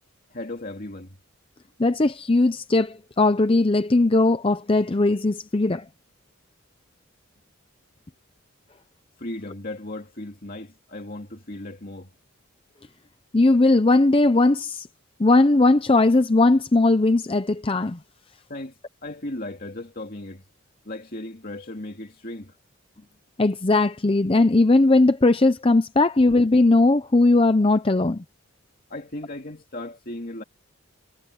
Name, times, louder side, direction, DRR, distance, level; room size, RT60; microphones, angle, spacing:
voice 1, 0.3-1.2 9.2-12.1 18.5-20.4 20.8-22.6 28.9-30.4, left 1 dB, 45° left, 2.4 m, -36 dB
voice 2, 1.8-5.9 13.3-14.9 15.2-18.0 23.4-28.2, left 2 dB, 25° left, 0.6 m, -19 dB
head